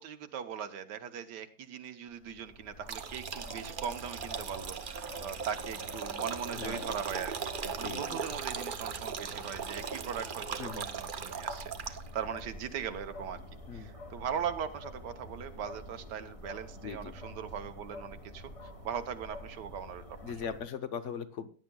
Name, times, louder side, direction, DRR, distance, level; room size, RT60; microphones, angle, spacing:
voice 1, 0.0-13.4 13.7-18.4 18.8-20.5, right 8 dB, 80° right, 9 dB, 1.5 m, -39 dB
sound 1, 2.1-20.6, left 1 dB, 20° left, 1.4 m, -48 dB
sound 2, 2.9-12.2, right 6 dB, 50° right, 0.6 m, -39 dB
voice 2, 6.6-6.9 7.6-8.2 10.6-10.9 13.7-13.9 16.8-17.1 20.2-21.5, left 6 dB, 50° left, 11 dB, 1.1 m, -39 dB
16.5 x 10.0 x 2.3 m, 0.39 s
omnidirectional pair, 1.8 m